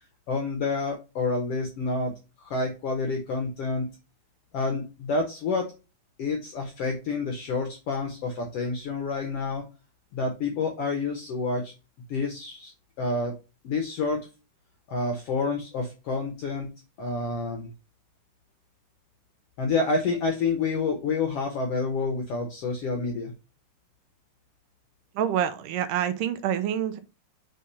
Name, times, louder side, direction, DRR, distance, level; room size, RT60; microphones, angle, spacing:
voice 1, 0.3-2.1 2.4-3.9 4.5-5.7 6.2-9.7 10.1-11.7 12.1-12.7 13.0-13.4 13.6-14.3 14.9-16.7 17.0-17.7 19.6-23.3, left 3 dB, 75° left, 1.4 m, -28 dB
voice 2, 25.2-27.0, right 10 dB, 85° right, 2.2 m, -27 dB
5.7 x 3.7 x 5.4 m
omnidirectional pair, 3.9 m